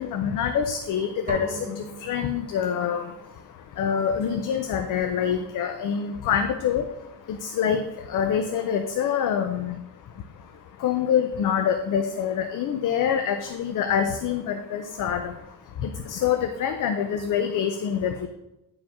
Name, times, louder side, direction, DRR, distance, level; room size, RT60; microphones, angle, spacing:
voice 1, 0.0-18.3, left 8 dB, 65° left, 7 dB, 0.6 m, -26 dB
sound 1, 1.3-3.1, right 4 dB, 25° right, 0.9 m, -39 dB
9.9 x 5.0 x 3.6 m, 0.92 s
wide cardioid pair, 170°, 34 cm